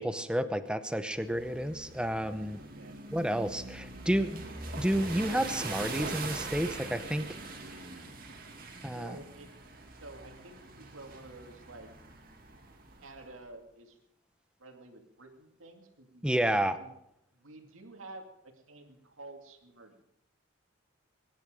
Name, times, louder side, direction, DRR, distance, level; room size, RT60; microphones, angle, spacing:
voice 1, 0.0-2.6 3.1-4.4 4.8-7.3 8.8-9.2 16.2-16.8, equal, 5° right, 11 dB, 0.8 m, -30 dB
sound 1, 1.1-13.2, right 3 dB, 45° right, 2.3 m, -42 dB
voice 2, 2.6-3.0 8.4-8.6 8.9-9.5 9.9-11.9 13.0-14.0 14.6-16.3 16.8-16.9 17.3-20.0, right 2 dB, 90° right, 4 dB, 2.4 m, -50 dB
23.0 x 10.5 x 5.2 m, 0.81 s
head